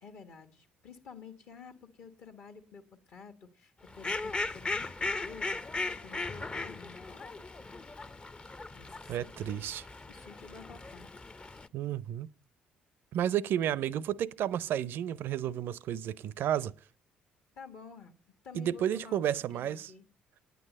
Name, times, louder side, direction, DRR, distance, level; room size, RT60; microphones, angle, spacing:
voice 1, 0.0-4.9 5.2-7.4 8.7-9.6 10.1-11.1 17.6-18.1 18.4-20.0, left 5 dB, 60° left, 1.4 m, -50 dB
Fowl, 3.9-11.7, left 3 dB, 25° left, 0.6 m, -38 dB
voice 2, 9.1-9.8 11.7-12.3 13.1-16.7 18.5-19.9, right 10 dB, 60° right, 0.5 m, -32 dB
9.4 x 9.2 x 5.2 m
hypercardioid pair, 50°, 4 cm